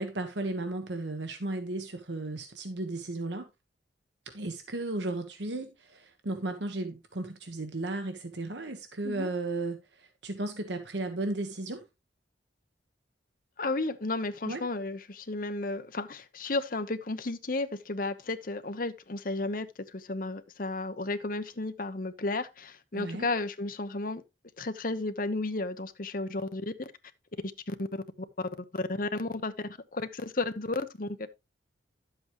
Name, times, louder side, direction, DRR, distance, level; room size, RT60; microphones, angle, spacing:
voice 1, 0.0-3.5 4.3-11.8 14.5-14.6 22.9-23.3, right 2 dB, 75° right, 1.1 m, -35 dB
voice 2, 13.6-19.7 19.9-24.2 24.6-26.9 27.7-27.9 28.7-29.5 29.9-31.3, left 2 dB, 50° left, 0.9 m, -33 dB
11.0 x 7.9 x 3.1 m
head